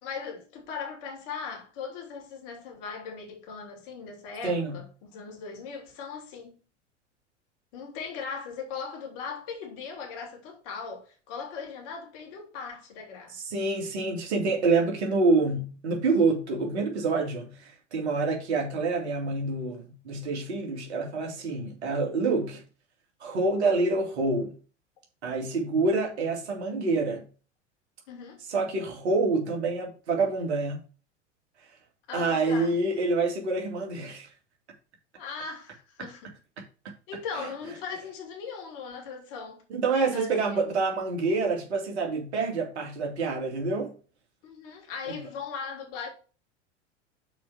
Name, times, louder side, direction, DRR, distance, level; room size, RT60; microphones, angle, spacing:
voice 1, 0.0-6.6 7.7-13.4 28.1-28.4 32.1-32.8 35.2-36.3 37.1-39.6 40.1-40.4 44.4-46.1, left 5 dB, 50° left, 2.7 m, -39 dB
voice 2, 4.4-4.8 13.3-22.6 23.2-24.5 25.2-27.2 28.5-30.8 32.1-34.3 37.3-37.5 39.7-43.9 45.1-45.2, right 3 dB, 65° right, 2.6 m, -27 dB
6.0 x 4.7 x 6.2 m
figure-of-eight pair, 85°, 36 cm